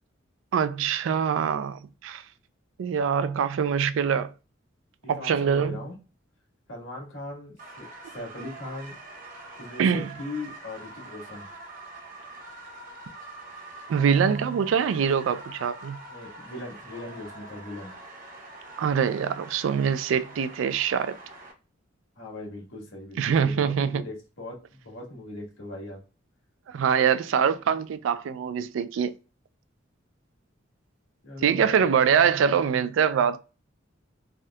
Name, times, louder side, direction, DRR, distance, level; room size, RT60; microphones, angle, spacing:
voice 1, 0.5-2.2 2.8-4.3 5.1-5.8 9.8-10.1 13.9-16.0 18.8-21.2 23.2-24.0 26.7-29.1 31.4-33.4, right 7 dB, 75° right, 0.3 m, -24 dB
voice 2, 5.0-5.9 6.7-8.9 9.6-11.4 16.1-17.9 22.2-26.0 31.2-32.2, left 2 dB, 80° left, 1.5 m, -39 dB
sound 1, 7.6-21.5, right 2 dB, 45° right, 0.8 m, -44 dB
3.5 x 2.7 x 2.2 m
head